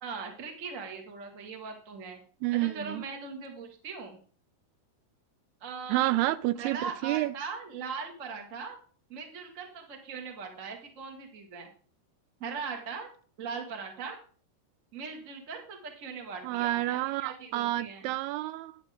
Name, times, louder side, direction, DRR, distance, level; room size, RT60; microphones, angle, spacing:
voice 1, 0.0-2.2 2.5-4.2 5.6-6.2 6.5-8.8 9.1-11.7 12.4-13.1 13.4-14.2 14.9-18.1, right 5 dB, 35° right, 1.2 m, -40 dB
voice 2, 2.4-3.0 5.9-7.3 16.4-18.8, right 17 dB, 85° right, 2.5 m, -29 dB
11.0 x 9.6 x 3.6 m
omnidirectional pair, 4.6 m